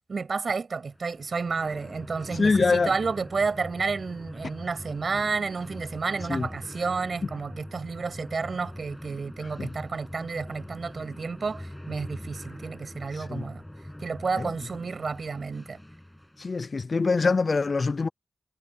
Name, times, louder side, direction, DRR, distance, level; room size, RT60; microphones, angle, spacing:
voice 1, 0.1-13.6 14.0-15.8, right 4 dB, 65° right, 7.6 m, -31 dB
sound 1, 0.9-16.7, left 1 dB, 10° left, 7.3 m, -42 dB
voice 2, 2.4-2.9 6.3-6.5 9.6-9.7 13.2-13.4 14.4-14.5 16.4-18.1, left 4 dB, 60° left, 0.5 m, -24 dB
cardioid pair, 45°, 0 cm